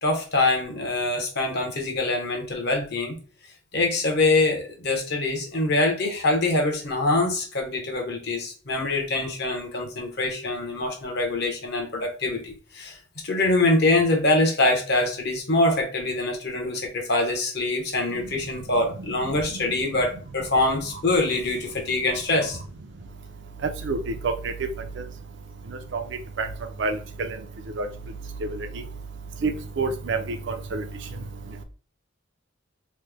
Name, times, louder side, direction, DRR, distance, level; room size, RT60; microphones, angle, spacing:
voice 1, 0.0-3.1 3.7-13.0 13.2-22.6, left 2 dB, 55° left, 2 dB, 0.9 m, -24 dB
voice 2, 26.8-27.3 27.8-27.9 29.4-29.5 29.8-30.2 30.5-30.8, right 4 dB, 60° right, 6 dB, 0.5 m, -26 dB
3.1 x 2.1 x 3.3 m, 0.39 s
head